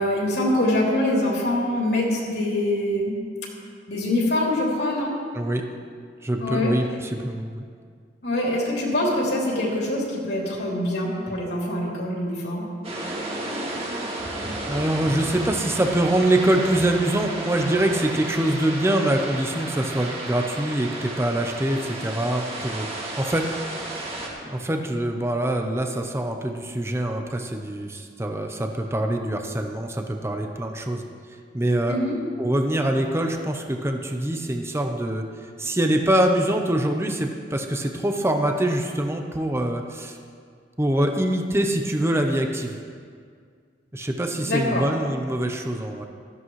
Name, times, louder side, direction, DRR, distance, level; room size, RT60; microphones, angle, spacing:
voice 1, 0.0-3.2 3.9-5.1 6.4-6.7 8.2-12.7 31.9-32.2 44.4-44.8, left 1 dB, 70° left, -3 dB, 3.3 m, -24 dB
voice 2, 5.3-5.6 6.2-7.6 14.7-22.9 23.2-23.5 24.4-31.0 31.5-32.0 32.4-35.2 35.6-40.2 40.8-42.7 43.9-46.1, right 1 dB, 15° right, 3 dB, 0.8 m, -24 dB
sound 1, 12.8-24.3, right 1 dB, 35° right, 2.1 m, -33 dB
16.5 x 14.0 x 3.2 m, 2.1 s
head